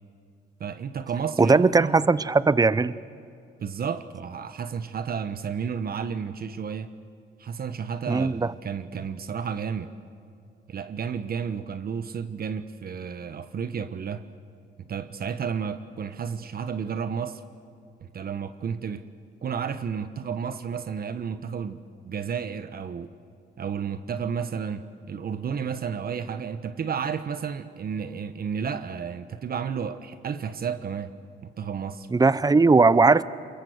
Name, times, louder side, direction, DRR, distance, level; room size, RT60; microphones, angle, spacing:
voice 1, 0.6-2.0 3.6-6.9 7.4-9.9 10.7-14.3 14.8-17.4 18.1-19.1 19.4-23.1 23.6-31.1 31.4-32.1, right 6 dB, 50° right, 1.1 m, -32 dB
voice 2, 1.4-2.9 8.1-8.5 32.1-33.2, right 4 dB, 20° right, 0.7 m, -19 dB
28.0 x 22.5 x 8.0 m
cardioid pair, 90°, 20 cm